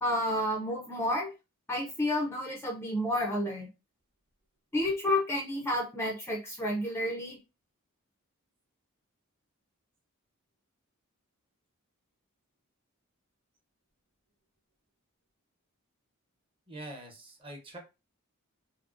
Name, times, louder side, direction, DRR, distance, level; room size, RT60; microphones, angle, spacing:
voice 1, 0.0-1.3 1.7-3.7 4.7-7.4, left 1 dB, 10° left, 0 dB, 0.4 m, -30 dB
voice 2, 16.7-17.8, right 1 dB, 25° right, 0 dB, 0.8 m, -44 dB
3.5 x 2.0 x 2.4 m, 0.28 s
head